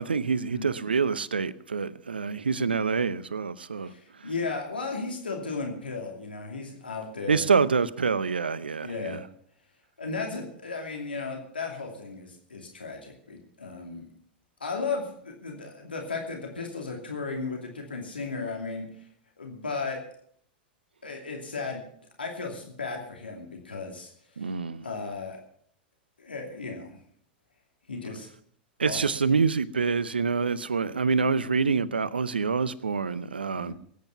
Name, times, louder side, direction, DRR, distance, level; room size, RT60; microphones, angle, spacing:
voice 1, 0.0-3.9 4.2-4.3 7.3-9.2 24.4-24.9 28.8-33.7, right 5 dB, 85° right, 0.7 m, -26 dB
voice 2, 3.8-7.5 8.8-9.2 10.0-14.1 14.6-18.9 19.4-20.0 21.0-21.8 22.2-24.5 24.8-25.4 26.2-26.9 27.9-28.3 28.8-29.0 33.5-33.7, left 4 dB, 85° left, 2.7 m, -35 dB
20.0 x 9.4 x 5.9 m
figure-of-eight pair, 95°, 5 cm